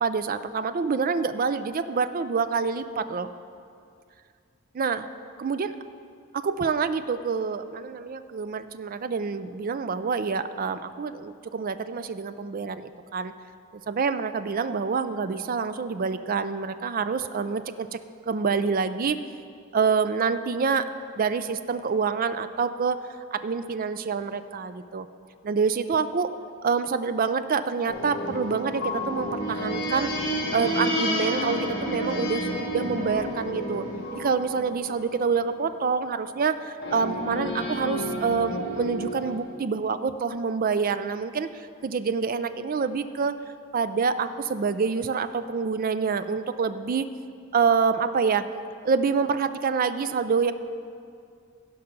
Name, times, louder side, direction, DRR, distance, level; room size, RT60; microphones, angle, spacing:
voice 1, 0.0-3.3 4.7-5.1 5.4-5.8 6.3-13.3 13.9-18.0 18.3-19.2 19.7-20.8 21.2-23.0 23.3-25.1 25.4-26.3 26.6-33.9 34.1-41.5 41.8-43.4 43.7-47.1 47.5-48.5 48.8-50.5, right 5 dB, 40° right, 12 dB, 0.4 m, -27 dB
sound 1, 27.9-35.7 36.8-39.4, equal, 55° left, 2.0 m, -30 dB
16.0 x 5.7 x 5.2 m, 2.4 s
head